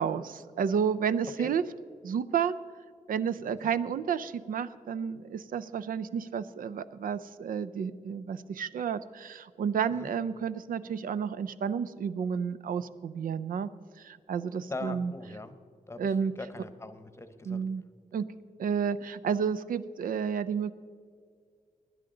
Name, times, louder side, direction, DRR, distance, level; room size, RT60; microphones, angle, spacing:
voice 1, 0.0-1.6 2.0-2.5 3.1-13.7 14.0-15.1 16.0-16.3 17.4-17.8 18.1-18.3 18.6-20.7, right 7 dB, 90° right, 15 dB, 0.5 m, -31 dB
voice 2, 14.7-15.5 15.9-16.1 16.4-17.6, left 2 dB, 20° left, 11 dB, 0.9 m, -40 dB
19.5 x 10.5 x 3.8 m, 2.1 s
wide cardioid pair, 115°, 14 cm